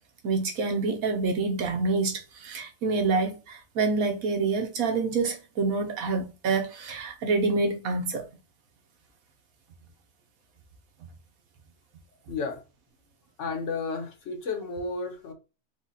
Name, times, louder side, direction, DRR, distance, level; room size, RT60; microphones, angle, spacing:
voice 1, 0.2-8.2, right 3 dB, 90° right, 1.4 m, -27 dB
voice 2, 12.3-12.6 13.4-15.3, left 4 dB, 60° left, 1.3 m, -32 dB
4.9 x 2.4 x 4.0 m
omnidirectional pair, 1.4 m